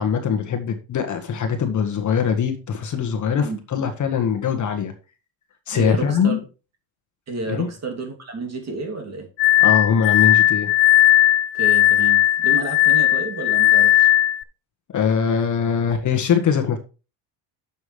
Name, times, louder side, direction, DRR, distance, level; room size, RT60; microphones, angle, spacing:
voice 1, 0.0-4.9 5.7-6.4 7.5-7.7 9.6-10.7 14.9-16.8, left 7 dB, 35° left, 7 dB, 1.4 m, -22 dB
voice 2, 5.7-6.4 7.3-9.3 11.5-14.1, right 3 dB, 30° right, 3 dB, 2.7 m, -30 dB
Glass, 9.4-14.4, left 14 dB, 60° left, 0.8 m, -16 dB
10.5 x 7.2 x 3.2 m, 0.32 s
cardioid pair, 155°, 48 cm